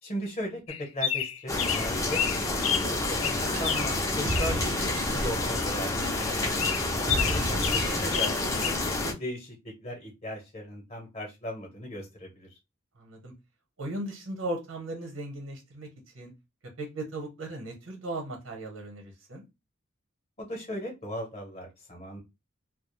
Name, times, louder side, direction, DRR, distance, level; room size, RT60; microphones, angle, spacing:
voice 1, 0.0-8.3 8.6-12.6 20.4-22.2, equal, 30° left, 1 dB, 0.8 m, -38 dB
sound 1, 0.7-2.9 3.2-5.0 5.5-5.7 6.0-6.3 6.6-8.7, left 8 dB, 85° left, 0.4 m, -31 dB
sound 2, 1.5-9.1, left 2 dB, 15° left, 0.4 m, -29 dB
sound 3, 2.8-8.5, right 1 dB, 60° right, 0.5 m, -36 dB
voice 2, 13.0-13.3 13.8-15.9 16.1-16.3 16.8-19.4, right 1 dB, 90° right, 3 dB, 0.9 m, -37 dB
2.3 x 2.1 x 3.0 m, 0.23 s
head